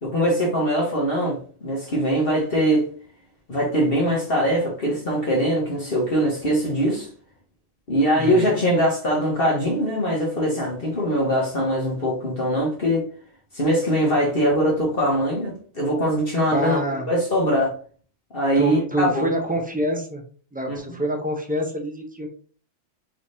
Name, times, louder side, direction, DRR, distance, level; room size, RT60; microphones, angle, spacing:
voice 1, 0.0-2.9 3.5-7.1 7.9-13.0 13.5-16.8 17.1-17.7 18.3-19.3 20.7-20.8, equal, 45° left, 1.5 m, -22 dB
voice 2, 8.2-8.6 16.5-17.1 18.6-20.2 20.5-22.3, right 1 dB, 10° right, 0.4 m, -26 dB
4.8 x 3.4 x 2.7 m
omnidirectional pair, 1.4 m